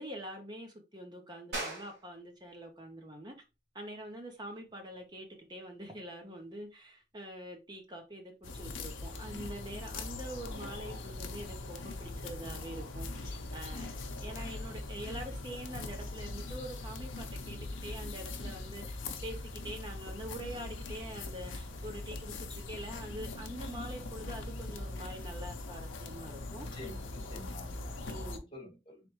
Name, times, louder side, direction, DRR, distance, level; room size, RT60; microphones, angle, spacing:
voice 1, 0.0-3.3 3.7-26.8 28.0-28.4, right 1 dB, 20° right, 0.8 m, -45 dB
sound 1, 1.5-11.8, right 2 dB, 55° right, 1.5 m, -49 dB
sound 2, 8.4-28.4, left 2 dB, 90° left, 0.7 m, -41 dB
voice 2, 26.6-29.0, left 2 dB, 25° left, 1.5 m, -49 dB
3.7 x 3.3 x 3.1 m
head